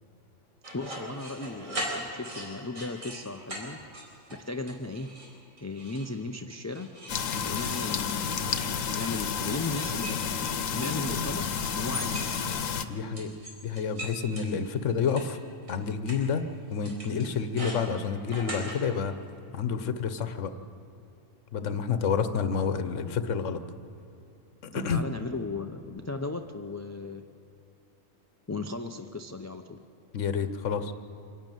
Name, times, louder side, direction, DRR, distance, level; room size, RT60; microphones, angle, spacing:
sound 1, 0.6-3.2 3.5-3.6 3.9-4.4 4.7-5.3 5.6-6.1 6.5-9.2 9.8-11.3 11.6-12.7 13.1-15.2 15.7-15.8 16.1-16.2 16.8-18.8, right 1 dB, 85° right, 4.8 m, -39 dB
voice 1, 0.7-3.8 4.3-5.1 5.6-6.9 7.4-8.7 8.9-11.5 11.7-12.4 24.7-27.2 28.5-29.8, left 2 dB, 20° left, 6 dB, 0.5 m, -36 dB
sound 2, 7.1-12.8, left 6 dB, 85° left, 1.3 m, -31 dB
voice 2, 12.9-13.3 13.6-15.4 15.7-16.4 16.7-19.1 19.5-20.5 21.5-23.6 24.6-25.0 30.1-30.9, left 6 dB, 70° left, 10 dB, 1.3 m, -29 dB
25.5 x 12.0 x 9.2 m, 2.8 s
omnidirectional pair, 1.4 m